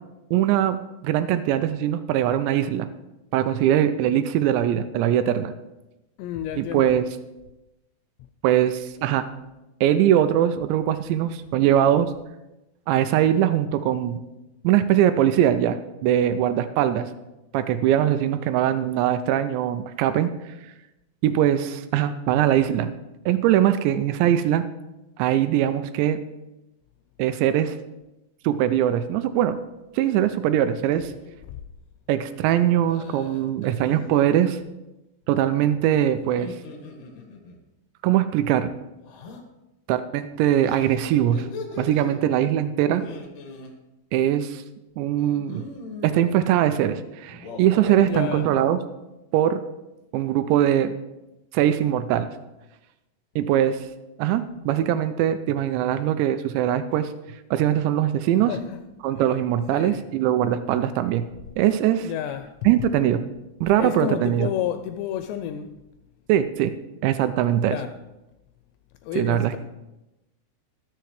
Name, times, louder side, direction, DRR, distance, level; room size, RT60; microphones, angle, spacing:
voice 1, 0.3-2.9 3.3-5.5 6.6-7.0 8.4-9.3 9.8-12.1 12.9-14.2 14.6-17.1 17.5-20.3 21.2-22.9 23.3-24.7 25.2-26.2 27.2-27.8 28.4-29.6 30.0-31.1 32.1-34.6 35.3-36.5 38.0-38.7 39.9-41.5 41.8-43.0 44.1-44.6 45.0-45.6 46.0-48.8 49.3-49.6 50.1-50.9 51.5-52.3 53.4-53.9 54.2-57.1 57.5-58.5 59.0-61.3 61.6-62.1 62.7-63.2 63.6-64.5 66.3-66.7 67.0-67.8 69.2-69.5, right 11 dB, 85° right, 2.8 m, -21 dB
voice 2, 6.2-7.0 31.4-31.6 48.0-48.5 58.5-58.8 59.2-59.3 59.7-60.0 62.0-62.6 63.8-65.8 67.7-68.0 69.0-69.6, left 11 dB, 85° left, 2.7 m, -31 dB
sound 1, 29.9-30.3 30.7-31.2 32.9-34.1 36.2-37.6 39.0-39.4 40.6-42.2 42.9-43.7 45.2-46.3 47.3-48.3, left 3 dB, 60° left, 2.5 m, -40 dB
20.5 x 6.9 x 3.2 m
omnidirectional pair, 5.1 m